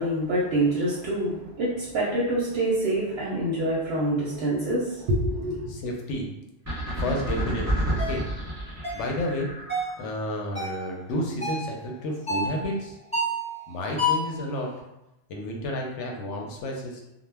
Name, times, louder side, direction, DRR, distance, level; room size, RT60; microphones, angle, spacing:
voice 1, 0.0-5.8, right 1 dB, 65° right, -5 dB, 0.7 m, -26 dB
voice 2, 5.7-6.3 7.0-8.3 8.9-9.5 10.0-12.9 13.7-14.7 15.3-17.0, left 1 dB, 90° left, 0 dB, 0.9 m, -31 dB
sound 1, 6.7-10.1, right 1 dB, 20° right, 0.6 m, -29 dB
sound 2, 8.0-8.2 8.8-9.1 9.7-10.0 10.6-10.8 11.4-11.7 12.3-12.6 13.1-13.5 14.0-14.3, left 1 dB, 5° left, 0.9 m, -28 dB
2.2 x 2.1 x 3.2 m, 0.90 s
omnidirectional pair, 1.2 m